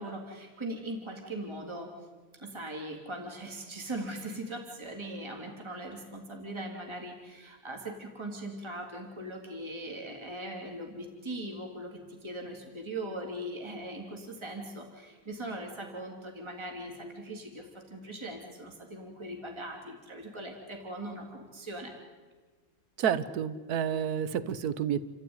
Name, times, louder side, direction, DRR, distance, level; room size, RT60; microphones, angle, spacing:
voice 1, 0.0-1.9 2.4-21.9, right 1 dB, 15° right, 1 dB, 3.1 m, -40 dB
voice 2, 23.0-25.0, right 8 dB, 60° right, 14 dB, 1.4 m, -30 dB
29.0 x 14.5 x 9.7 m, 1.4 s
omnidirectional pair, 2.0 m